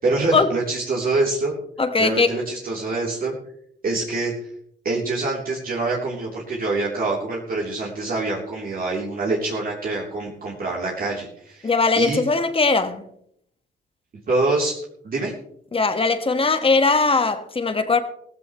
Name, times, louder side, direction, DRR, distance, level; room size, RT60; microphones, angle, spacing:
voice 1, 0.0-1.6 2.0-3.4 3.8-4.3 4.9-12.2 14.3-14.7 15.0-15.3, right 3 dB, 45° right, 3.5 m, -25 dB
voice 2, 1.8-2.3 11.6-13.0 15.7-18.0, left 4 dB, 30° left, 1.6 m, -20 dB
16.5 x 15.5 x 3.2 m
cardioid pair, 90°, 20 cm